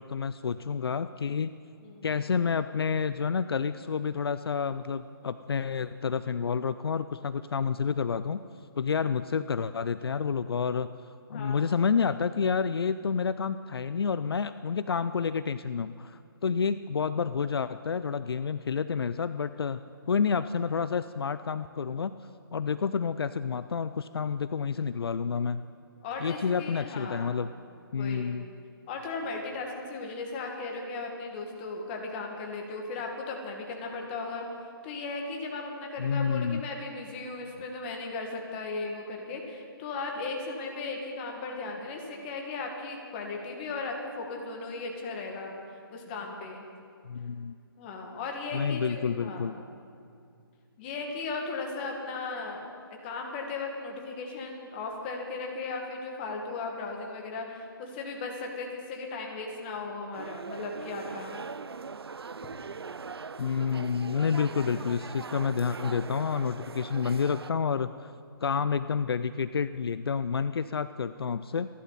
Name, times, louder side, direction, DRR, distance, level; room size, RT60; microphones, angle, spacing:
voice 1, 0.0-1.5 2.0-8.4 8.8-10.9 11.3-19.8 20.1-22.1 22.5-25.6 26.2-27.5 27.9-28.4 36.0-36.6 47.1-47.6 48.5-49.5 63.4-68.1 68.4-71.7, left 6 dB, 75° left, 13 dB, 0.5 m, -29 dB
voice 2, 11.3-11.7 26.0-27.3 27.9-28.4 28.9-34.5 34.8-46.7 47.8-49.6 50.8-61.4 64.6-64.9, left 3 dB, 25° left, 1 dB, 2.0 m, -37 dB
sound 1, 60.1-67.5, right 5 dB, 90° right, 0.5 m, -41 dB
26.5 x 11.0 x 4.2 m, 2.4 s
hypercardioid pair, 150°, 13 cm